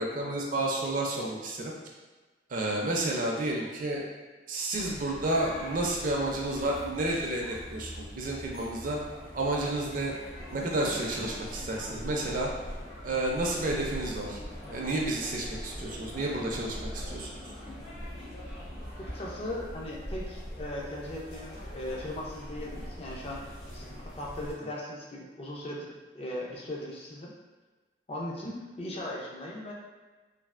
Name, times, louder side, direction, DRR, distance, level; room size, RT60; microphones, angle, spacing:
voice 1, 0.0-1.7 2.5-4.0 4.5-9.0 9.3-10.1 10.5-12.5 13.0-14.4 14.7-17.3, right 2 dB, 45° right, -2 dB, 0.4 m, -31 dB
sound 1, 4.7-24.5, equal, 90° left, 1.0 m, -42 dB
voice 2, 19.0-23.9 24.1-27.3 28.1-29.7, left 1 dB, 35° left, -2 dB, 0.4 m, -38 dB
3.2 x 2.3 x 2.4 m, 1.3 s
head